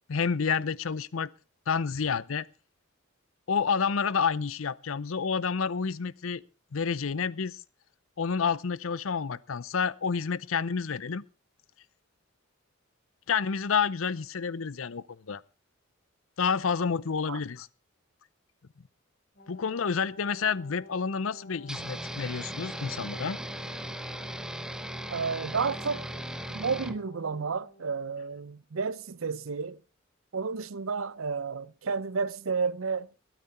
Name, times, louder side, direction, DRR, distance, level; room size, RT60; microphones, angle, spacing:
voice 1, 0.1-1.3 1.7-2.5 3.5-6.4 6.7-7.6 8.2-11.2 13.3-15.4 16.4-17.7 19.5-23.4, left 6 dB, 80° left, 0.6 m, -29 dB
Brass instrument, 19.3-28.1, equal, 55° left, 4.7 m, -50 dB
sound 1, 21.7-27.0, right 1 dB, 5° right, 0.8 m, -38 dB
voice 2, 25.1-26.1 26.5-29.8 30.3-33.1, right 5 dB, 80° right, 0.7 m, -31 dB
22.0 x 9.2 x 4.2 m
head